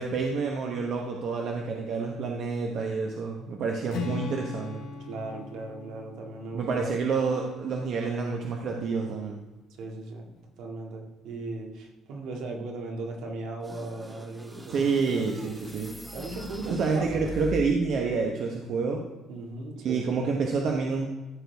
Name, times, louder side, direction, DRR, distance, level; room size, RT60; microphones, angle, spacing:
voice 1, 0.0-4.8 6.5-9.4 14.7-15.9 16.7-19.0 19.8-21.1, right 4 dB, 50° right, 1 dB, 1.0 m, -28 dB
Strum, 3.9-8.0, left 5 dB, 75° left, 2.1 m, -39 dB
voice 2, 4.8-7.0 9.8-10.3 10.6-17.3 19.3-20.2, right 2 dB, 70° right, 1 dB, 2.0 m, -38 dB
sound 1, 13.6-18.0, equal, 10° right, 0.8 m, -41 dB
13.5 x 6.5 x 3.5 m, 1.1 s
cardioid pair, 170°, 0 cm